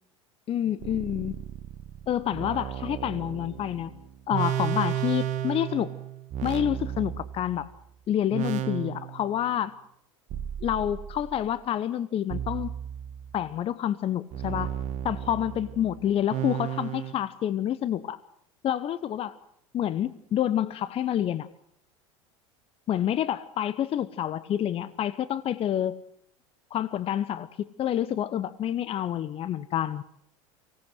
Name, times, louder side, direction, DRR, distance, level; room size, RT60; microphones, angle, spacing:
voice 1, 0.5-1.4 2.1-3.9 4.3-5.9 6.4-7.7 8.1-9.7 10.6-12.7 13.3-14.7 15.0-18.2 18.6-19.4 19.7-21.5 22.9-26.0 26.7-30.0, left 10 dB, 35° left, 17 dB, 0.8 m, -28 dB
sound 1, 0.8-7.8 8.3-9.4 10.3-11.5 12.3-13.5 14.3-17.1, right 11 dB, 45° right, 1.5 m, -34 dB
24.5 x 17.5 x 7.8 m, 0.71 s
figure-of-eight pair, 75°, 17 cm